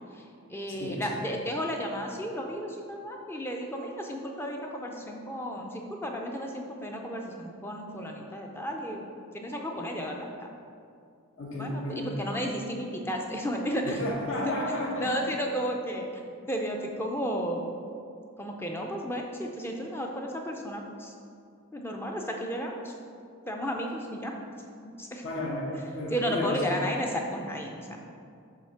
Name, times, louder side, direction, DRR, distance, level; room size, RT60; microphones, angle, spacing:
voice 1, 0.1-9.1 9.3-10.3 11.5-14.0 15.0-16.1 16.5-17.7 18.4-21.1 21.7-22.9 23.5-24.3 25.0-25.2 26.1-28.0, equal, 10° left, 1 dB, 0.4 m, -33 dB
voice 2, 0.7-1.2 11.4-12.1 13.8-15.5 25.2-26.6, left 1 dB, 70° left, -3 dB, 1.1 m, -33 dB
7.6 x 2.8 x 5.7 m, 2.4 s
head